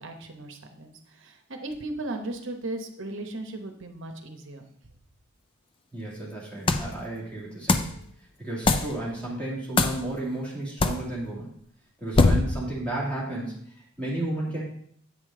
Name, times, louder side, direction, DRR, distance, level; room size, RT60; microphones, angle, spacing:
voice 1, 0.0-4.6, right 2 dB, 60° right, 5 dB, 0.9 m, -36 dB
voice 2, 5.9-7.9 8.4-11.5 12.0-14.6, right 1 dB, 5° left, -5 dB, 2.1 m, -33 dB
sound 1, 6.7-7.0 7.7-8.0 8.7-9.0 9.8-10.1 10.8-11.1 12.2-12.6, left 3 dB, 25° left, 0.3 m, -22 dB
8.4 x 5.1 x 3.7 m, 0.66 s
head